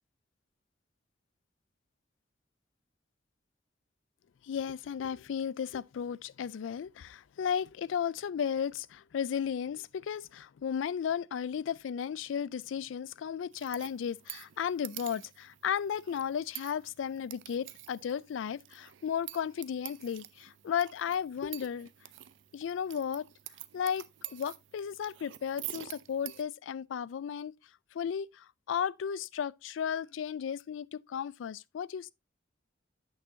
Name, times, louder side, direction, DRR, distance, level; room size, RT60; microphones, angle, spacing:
voice 1, 4.4-21.9 22.5-23.3 23.7-27.5 27.9-32.1, left 8 dB, 90° left, 0.3 m, -34 dB
sound 1, 13.5-26.4, right 15 dB, 80° right, 0.5 m, -48 dB
8.2 x 6.2 x 2.7 m
head